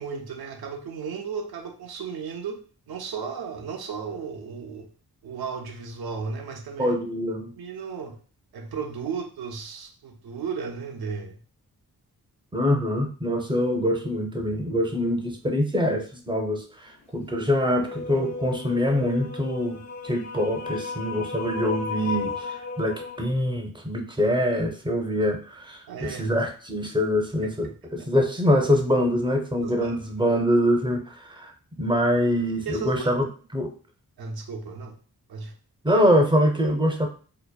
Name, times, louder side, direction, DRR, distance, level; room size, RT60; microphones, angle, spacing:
voice 1, 0.0-2.6 2.9-4.9 5.2-6.9 7.6-8.2 8.5-11.4 25.9-26.4 27.4-28.1 29.6-30.3 32.7-33.2 34.2-35.0 35.3-35.5, right 5 dB, 75° right, 3 dB, 0.5 m, -35 dB
voice 2, 6.8-7.5 12.5-31.5 31.8-33.3 33.5-33.7 35.8-37.1, equal, 15° right, 3 dB, 0.5 m, -24 dB
sound 1, 17.6-23.2, left 4 dB, 45° left, 0.4 m, -34 dB
2.8 x 2.0 x 2.2 m, 0.40 s
cardioid pair, 50°, 38 cm